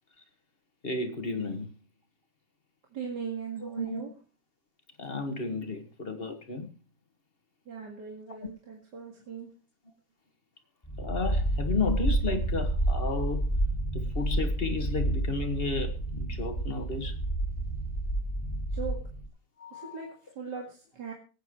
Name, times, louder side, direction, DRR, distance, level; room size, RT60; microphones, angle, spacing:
voice 1, 0.8-1.7 3.6-4.0 5.0-6.7 11.0-13.6 13.9-17.2 19.6-20.0, left 3 dB, 35° left, 6 dB, 1.8 m, -33 dB
voice 2, 2.9-4.1 7.7-9.5 18.7-19.0 19.7-21.1, right 6 dB, 75° right, 0 dB, 2.7 m, -39 dB
sound 1, 10.8-19.3, right 1 dB, 15° left, 4.1 m, -30 dB
24.5 x 9.0 x 3.1 m, 0.35 s
omnidirectional pair, 1.9 m